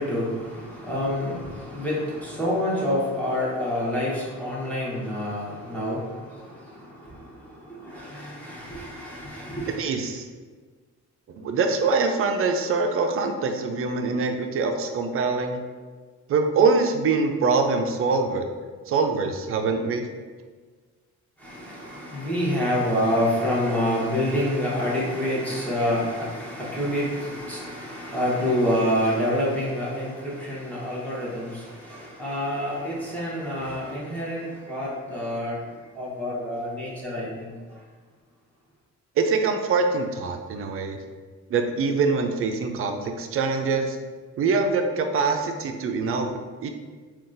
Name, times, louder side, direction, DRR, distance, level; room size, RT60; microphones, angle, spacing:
voice 1, 0.0-6.0 7.8-9.8 21.4-35.6 36.0-37.5, left 1 dB, 5° left, -8 dB, 1.0 m, -27 dB
voice 2, 9.7-10.3 11.3-15.6 16.3-18.5 18.9-20.1 39.2-41.0 41.5-44.0 44.4-46.7, right 4 dB, 50° right, 5 dB, 0.4 m, -24 dB
3.7 x 2.3 x 2.5 m, 1.5 s
cardioid pair, 90°, 30 cm